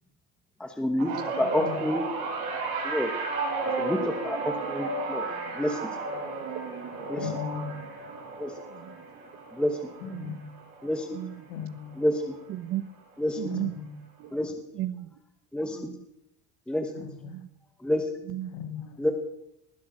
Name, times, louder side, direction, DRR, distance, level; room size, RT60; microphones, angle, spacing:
voice 1, 0.6-1.1 1.4-2.0 2.8-3.1 3.8-5.3 5.6-5.8 7.1-7.3 8.4-8.5 9.6-9.8 10.8-11.1 12.0-12.3 13.2-13.4 14.3-14.5 15.5-15.8 16.7-16.9 17.8-18.0 19.0-19.1, left 1 dB, 5° left, 6 dB, 0.9 m, -28 dB
sound 1, 1.0-11.4 11.8-12.2 13.3-13.4, right 3 dB, 65° right, 6.1 m, -34 dB
voice 2, 1.4-1.8 7.2-7.7 10.0-10.4 11.5-12.0 13.5-13.9 17.0-17.3 18.5-19.0, left 7 dB, 80° left, 7 dB, 2.8 m, -37 dB
voice 3, 8.7-9.1 10.1-10.4 11.1-11.4 12.5-12.8 13.4-13.7 14.2-14.3 14.7-15.1 15.7-16.0 17.2-17.5 18.2-18.5, right 13 dB, 45° right, 15 dB, 1.1 m, -35 dB
19.5 x 11.0 x 6.2 m, 0.82 s
cardioid pair, 175°, 32 cm